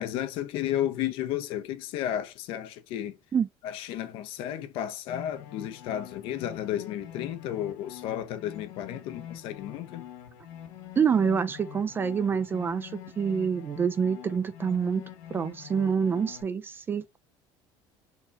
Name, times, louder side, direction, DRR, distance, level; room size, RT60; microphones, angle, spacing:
voice 1, 0.0-3.2 3.6-10.1, left 11 dB, 65° left, 0.8 m, -33 dB
sound 1, 5.1-16.4, left 10 dB, 85° left, 1.7 m, -45 dB
voice 2, 11.0-15.0 15.3-17.2, right 6 dB, 20° right, 0.3 m, -27 dB
4.4 x 3.5 x 2.5 m
cardioid pair, 150°, 10 cm